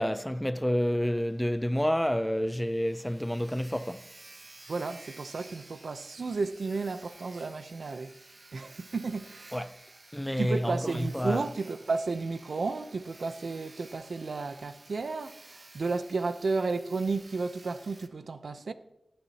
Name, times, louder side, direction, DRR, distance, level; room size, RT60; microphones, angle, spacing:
voice 1, 0.0-4.0 9.5-9.8 10.1-11.5, equal, 5° left, 0.4 m, -29 dB
Sawing, 1.2-1.3 1.6-1.7 2.1-2.2 2.4-18.1, right 2 dB, 50° right, 1.1 m, -53 dB
voice 2, 4.7-8.1 8.5-9.7 10.4-18.7, right 4 dB, 85° right, 0.7 m, -33 dB
19.0 x 11.5 x 2.9 m
wide cardioid pair, 70°, 0 cm